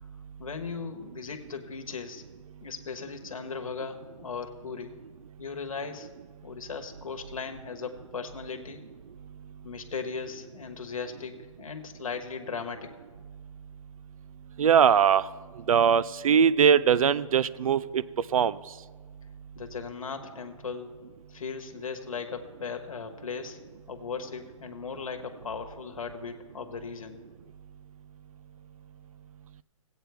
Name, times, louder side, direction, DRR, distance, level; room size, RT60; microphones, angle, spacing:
voice 1, 0.4-2.2 2.6-4.9 5.4-6.1 6.4-8.8 9.6-12.9 19.5-20.9 21.3-23.6 23.9-27.2, left 5 dB, 80° left, 6 dB, 1.2 m, -37 dB
voice 2, 14.6-15.3 15.7-18.0 18.3-18.5, right 7 dB, 80° right, 19 dB, 0.4 m, -21 dB
15.5 x 8.7 x 3.4 m, 1.5 s
hypercardioid pair, 175°, 18 cm